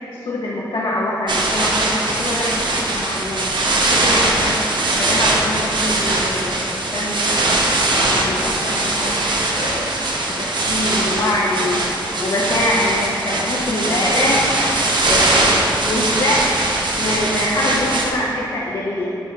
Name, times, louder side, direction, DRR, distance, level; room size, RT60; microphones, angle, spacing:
voice 1, 0.1-3.5 3.9-4.6 4.9-7.5 8.0-9.2 9.5-11.8 12.2-14.4 15.0-16.6 17.0-19.1, left 1 dB, 70° left, -5 dB, 0.9 m, -24 dB
sound 1, 1.3-18.1, right 2 dB, 75° right, 0.9 m, -20 dB
9.5 x 4.4 x 3.5 m, 2.8 s
cardioid pair, 65°, 8 cm